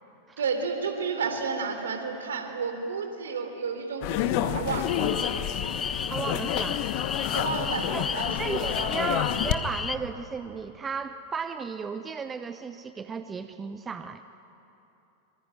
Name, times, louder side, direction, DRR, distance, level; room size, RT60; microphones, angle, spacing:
voice 1, 0.4-5.1 7.3-8.9, right 5 dB, 65° right, 5 dB, 3.5 m, -32 dB
sound 1, 4.0-9.5, left 11 dB, 45° left, 1.2 m, -29 dB
sound 2, 4.9-10.0, left 6 dB, 20° left, 0.6 m, -34 dB
voice 2, 6.1-6.8 7.9-8.1 8.4-14.2, right 5 dB, 20° right, 10 dB, 0.8 m, -34 dB
25.0 x 25.0 x 9.1 m, 3.0 s
figure-of-eight pair, 90°, 0 cm